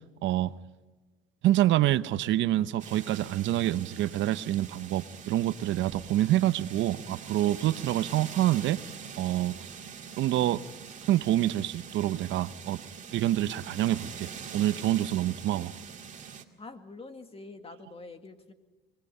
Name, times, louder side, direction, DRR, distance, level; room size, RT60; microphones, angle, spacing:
voice 1, 0.2-0.5 1.4-8.8 9.2-9.6 10.2-10.6 11.0-12.8 13.1-15.7, right 13 dB, 65° right, 0.9 m, -27 dB
sound 1, 2.8-16.4, right 7 dB, 35° right, 2.1 m, -44 dB
voice 2, 16.6-18.5, left 3 dB, 25° left, 2.2 m, -45 dB
24.0 x 20.5 x 5.6 m
supercardioid pair, 95°, 21 cm